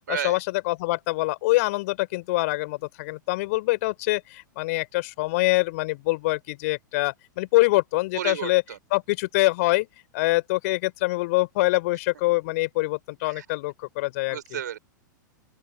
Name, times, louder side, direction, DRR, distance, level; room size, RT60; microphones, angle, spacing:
voice 1, 0.1-8.6 8.9-9.9 10.1-14.6, left 21 dB, 45° left, 3.8 m, -25 dB
voice 2, 8.1-8.8 13.3-13.4 14.3-14.8, right 9 dB, 65° right, 4.3 m, -32 dB
open air
figure-of-eight pair, 100°, 11 cm